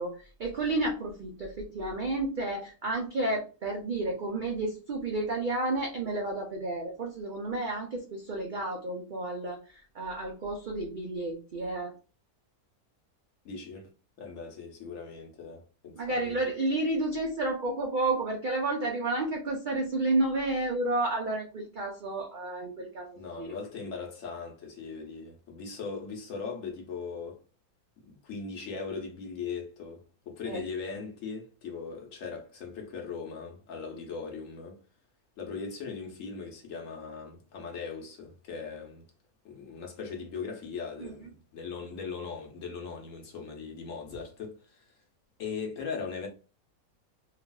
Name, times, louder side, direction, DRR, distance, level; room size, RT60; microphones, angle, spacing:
voice 1, 0.0-11.9 16.0-23.5 30.4-30.6 41.0-41.3, right 2 dB, 80° right, 0.4 m, -31 dB
voice 2, 13.4-13.9 14.2-16.4 23.1-27.4 28.0-34.8 35.4-39.0 39.4-44.8 45.4-46.3, left 5 dB, 65° left, 1.1 m, -39 dB
3.3 x 2.3 x 2.2 m
omnidirectional pair, 1.5 m